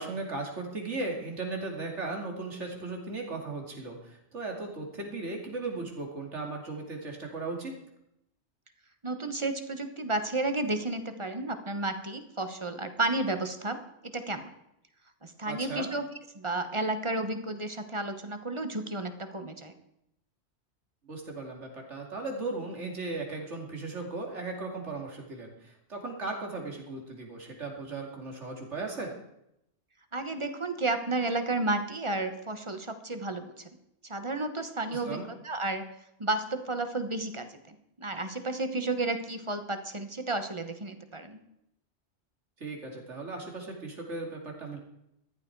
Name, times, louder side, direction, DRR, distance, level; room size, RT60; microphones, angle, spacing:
voice 1, 0.0-7.7 15.5-15.9 21.0-29.1 34.9-35.3 42.6-44.8, right 3 dB, 85° right, 1 dB, 2.8 m, -37 dB
voice 2, 9.0-13.8 14.0-14.4 15.2-16.0 16.3-19.7 30.1-33.6 34.0-35.2 35.4-35.8 36.2-41.4, right 2 dB, 25° right, 8 dB, 1.1 m, -32 dB
14.5 x 11.5 x 4.6 m, 0.82 s
omnidirectional pair, 1.2 m